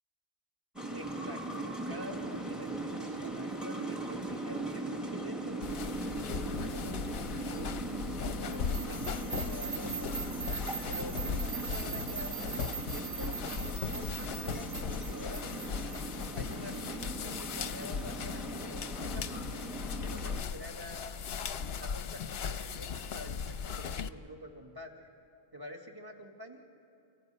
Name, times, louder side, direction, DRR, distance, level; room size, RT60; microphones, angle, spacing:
sound 1, 0.8-20.4, right 2 dB, ahead, 1.3 m, -39 dB
voice 1, 0.9-7.7 8.2-10.2 10.9-15.7 16.3-19.6 20.0-21.2 21.8-25.1 25.5-26.6, equal, 20° right, 1 dB, 2.0 m, -48 dB
sound 2, 5.6-24.1, left 6 dB, 60° left, 0.9 m, -38 dB
sound 3, 8.5-17.6, right 8 dB, 65° right, 2.5 m, -42 dB
28.5 x 24.0 x 5.5 m, 2.6 s
omnidirectional pair, 1.2 m